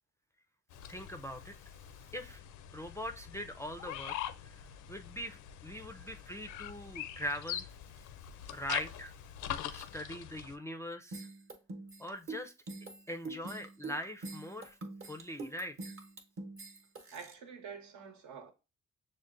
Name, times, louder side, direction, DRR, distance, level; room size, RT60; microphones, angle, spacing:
sound 1, 0.7-10.6, left 10 dB, 80° left, 0.5 m, -43 dB
voice 1, 0.9-1.7 2.1-2.4 2.7-4.6 4.9-7.7 8.5-9.1 9.7-11.3 12.0-12.5 13.1-14.8 15.0-15.9, equal, 10° left, 0.3 m, -42 dB
sound 2, 11.1-17.3, right 2 dB, 45° right, 0.9 m, -44 dB
voice 2, 17.1-18.5, right 6 dB, 75° right, 1.0 m, -47 dB
6.4 x 2.1 x 2.4 m
cardioid pair, 90°, 30 cm